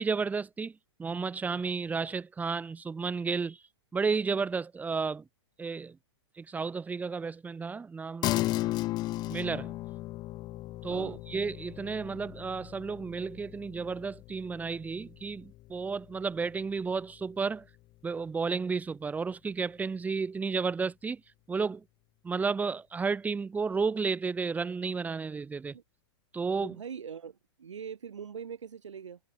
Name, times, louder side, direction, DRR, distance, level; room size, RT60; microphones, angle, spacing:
voice 1, 0.0-3.6 3.9-5.2 5.6-6.0 6.4-8.5 9.3-9.7 10.8-17.7 18.0-21.2 21.5-21.8 22.2-25.7 26.3-26.8, right 5 dB, 10° right, 1.8 m, -32 dB
sound 1, 8.2-18.0, left 17 dB, 25° left, 0.8 m, -36 dB
voice 2, 10.9-11.2 25.7-25.8 26.6-29.2, right 7 dB, 90° right, 4.0 m, -42 dB
hypercardioid pair, 135°, 15 cm